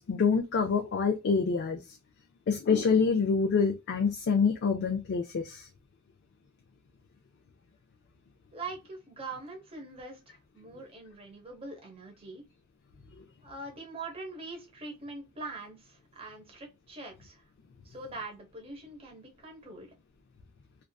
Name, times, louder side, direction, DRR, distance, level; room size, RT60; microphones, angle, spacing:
voice 1, 0.0-1.8 2.5-5.7, left 5 dB, 55° left, 0.4 m, -26 dB
voice 2, 8.5-12.4 13.4-17.4 17.8-19.9, right 3 dB, 30° right, 0.8 m, -43 dB
2.4 x 2.3 x 2.2 m
head